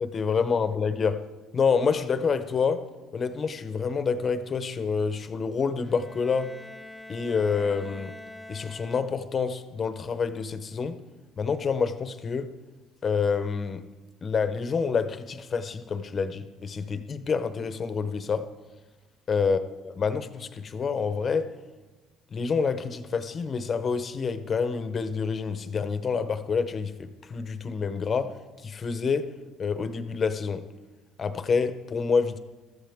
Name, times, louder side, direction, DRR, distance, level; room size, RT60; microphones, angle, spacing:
voice 1, 0.0-1.2 1.5-2.8 3.1-6.5 7.1-8.1 8.5-11.0 11.4-12.5 13.0-13.8 14.2-18.5 19.3-19.6 20.0-21.5 22.3-28.4 28.6-29.3 29.6-30.6 31.2-32.4, left 5 dB, 30° left, 0.8 m, -27 dB
Bowed string instrument, 5.8-9.5, left 1 dB, 5° left, 0.5 m, -45 dB
21.5 x 14.0 x 3.6 m
cardioid pair, 150°, 0 cm